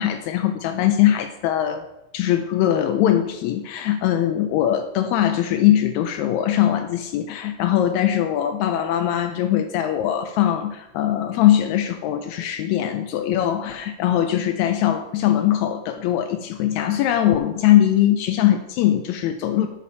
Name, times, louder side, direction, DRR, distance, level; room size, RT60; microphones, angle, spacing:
voice 1, 0.0-1.8 2.1-19.7, left 11 dB, 80° left, 7 dB, 1.8 m, -21 dB
10.5 x 8.3 x 2.8 m, 0.95 s
omnidirectional pair, 3.3 m